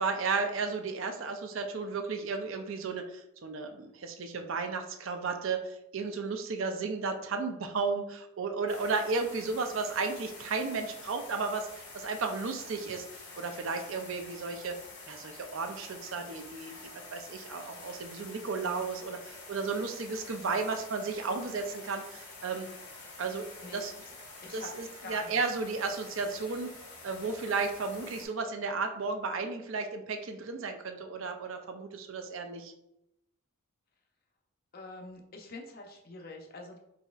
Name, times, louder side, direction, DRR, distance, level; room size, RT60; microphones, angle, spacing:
voice 1, 0.0-13.1 13.4-14.7 15.1-16.8 17.1-22.7 23.2-23.9 24.5-26.7 27.0-32.7, right 4 dB, 60° right, 6 dB, 0.5 m, -34 dB
sound 1, 8.7-28.3, left 3 dB, 80° left, 1.4 m, -48 dB
voice 2, 18.3-18.9 23.6-23.9 24.4-24.7 25.0-25.4 34.7-36.8, left 2 dB, 45° left, 2 dB, 0.6 m, -46 dB
4.1 x 4.0 x 2.4 m, 0.82 s
head